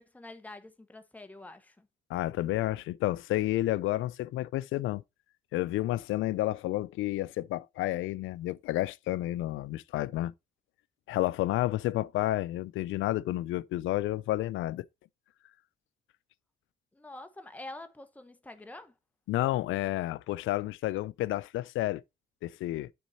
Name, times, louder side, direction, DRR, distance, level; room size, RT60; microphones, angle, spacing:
voice 1, 0.0-1.9 16.9-18.9, left 2 dB, 5° left, 1.1 m, -46 dB
voice 2, 2.1-5.0 5.5-10.3 11.1-14.9 19.3-22.0 22.4-22.9, left 15 dB, 85° left, 0.4 m, -30 dB
9.4 x 4.1 x 4.1 m
cardioid pair, 90°, 20 cm